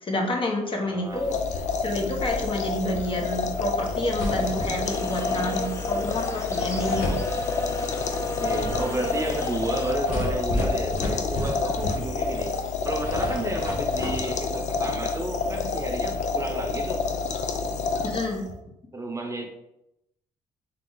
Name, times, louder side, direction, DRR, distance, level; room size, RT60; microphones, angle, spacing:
voice 1, 0.0-1.3 1.8-7.1 18.0-18.4, left 1 dB, 40° left, 1.0 m, -29 dB
voice 2, 0.8-1.3 8.4-12.5 12.8-17.1 18.9-19.5, right 2 dB, 20° right, 0.8 m, -32 dB
sound 1, 1.1-18.5, left 4 dB, 60° left, 0.6 m, -28 dB
sound 2, 3.5-3.6 3.8-5.0 6.3-6.4 6.7-7.9 8.3-12.5 12.7-14.2, left 1 dB, 75° left, 1.1 m, -32 dB
sound 3, 4.8-9.9, left 1 dB, 20° left, 0.7 m, -36 dB
3.3 x 3.0 x 3.9 m
supercardioid pair, 65°, 14 cm